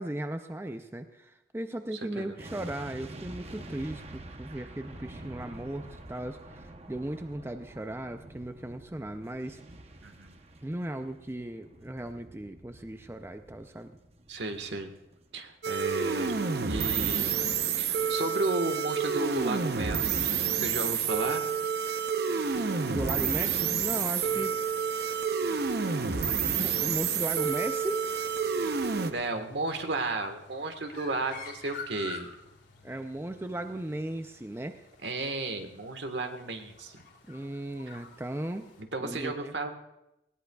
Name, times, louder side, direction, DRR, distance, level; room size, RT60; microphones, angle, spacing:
voice 1, 0.0-9.6 10.6-14.0 22.5-24.6 26.5-28.2 32.8-34.8 37.3-38.7 39.0-39.5, right 1 dB, 15° right, 7 dB, 0.4 m, -37 dB
voice 2, 1.9-2.4 10.0-10.4 14.3-14.9 15.3-16.3 16.7-17.4 17.8-21.5 24.2-24.4 28.8-32.3 35.0-37.1 37.9-38.0 38.8-39.7, right 2 dB, 80° right, 6 dB, 1.4 m, -34 dB
sound 1, 2.4-15.5 15.8-16.0, right 1 dB, 35° right, 0.8 m, -48 dB
sound 2, 15.6-29.1, right 6 dB, 60° right, 0.7 m, -29 dB
sound 3, 23.0-38.8, left 4 dB, 80° left, 2.9 m, -50 dB
19.0 x 17.5 x 2.3 m, 0.90 s
head